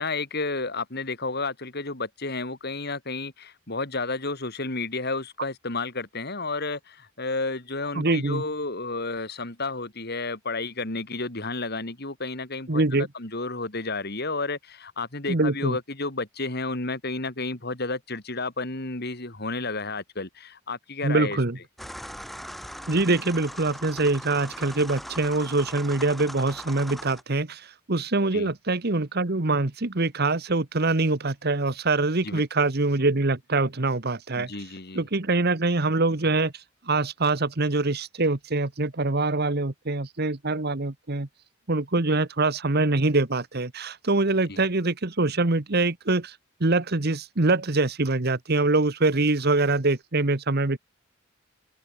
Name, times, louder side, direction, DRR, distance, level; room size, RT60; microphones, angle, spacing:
voice 1, 0.0-21.4 28.3-28.5 32.2-32.4 34.4-35.0 42.1-42.2 44.5-44.6, left 3 dB, 50° left, 3.5 m, -31 dB
voice 2, 7.9-8.4 12.7-13.1 15.3-15.8 21.0-21.6 22.9-34.5 34.9-36.5 36.9-41.3 41.7-46.3 46.6-50.8, right 2 dB, 50° right, 1.4 m, -24 dB
sound 1, 21.8-27.2, equal, ahead, 4.9 m, -40 dB
head